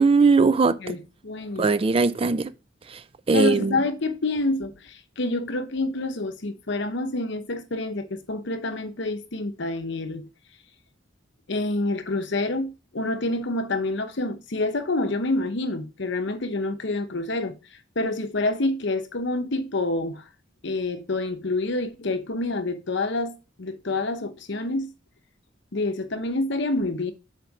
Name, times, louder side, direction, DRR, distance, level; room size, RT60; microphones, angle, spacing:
voice 1, 0.0-0.8 1.6-2.5 2.9-3.0 3.3-3.8, right 4 dB, 30° right, 0.4 m, -19 dB
voice 2, 0.8-1.7 3.3-10.3 11.5-17.6 18.0-20.2 20.6-24.9 25.7-27.1, left 2 dB, 65° left, 0.9 m, -27 dB
6.8 x 4.5 x 4.8 m
head